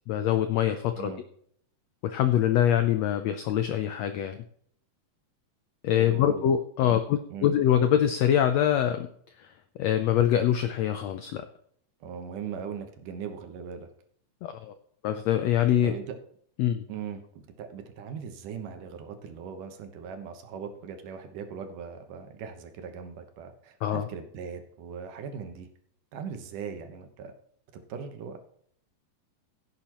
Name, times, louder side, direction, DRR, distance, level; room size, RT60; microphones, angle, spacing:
voice 1, 0.1-1.1 2.0-4.4 5.8-9.1 9.4-9.5 9.8-11.4 14.4-14.7 15.0-15.9 16.6-16.8 23.8-24.1, left 10 dB, 85° left, 9 dB, 1.5 m, -24 dB
voice 2, 6.0-6.5 6.8-7.0 7.3-7.5 12.0-13.9 15.8-16.2 16.9-17.2 17.6-25.7 26.1-27.3 27.7-28.4, right 7 dB, 75° right, 6 dB, 2.7 m, -39 dB
16.5 x 8.7 x 3.0 m, 0.63 s
omnidirectional pair, 3.9 m